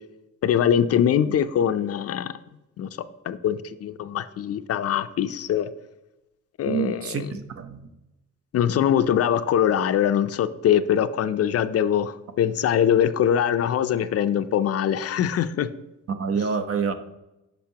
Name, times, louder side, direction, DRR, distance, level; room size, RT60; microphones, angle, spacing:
voice 1, 0.4-2.4 2.8-2.9 3.3-5.7 6.6-7.3 8.5-15.7, left 9 dB, 55° left, 12 dB, 0.5 m, -22 dB
voice 2, 6.6-7.8 16.1-16.9, right 6 dB, 50° right, 8 dB, 0.8 m, -27 dB
10.0 x 5.4 x 2.8 m, 0.95 s
cardioid pair, 90°, 30 cm